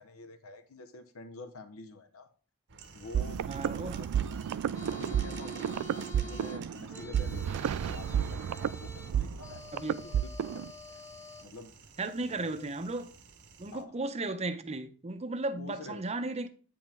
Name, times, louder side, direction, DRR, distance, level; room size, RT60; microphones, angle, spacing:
voice 1, 0.0-2.3 2.9-3.4 3.7-4.3 4.9-10.3 10.5-11.0 11.4-11.7 12.3-12.6 13.7-14.0 15.6-16.2, left 3 dB, 70° left, 0.8 m, -48 dB
sound 1, 2.7-13.8, right 5 dB, 55° right, 0.9 m, -52 dB
sound 2, 3.1-10.7, right 9 dB, 75° right, 0.3 m, -32 dB
voice 2, 3.5-4.0 9.7-10.0 12.0-13.1 13.6-16.5, right 2 dB, 30° right, 0.6 m, -35 dB
sound 3, 4.7-11.4, left 2 dB, 15° left, 0.6 m, -48 dB
8.8 x 5.2 x 3.4 m
head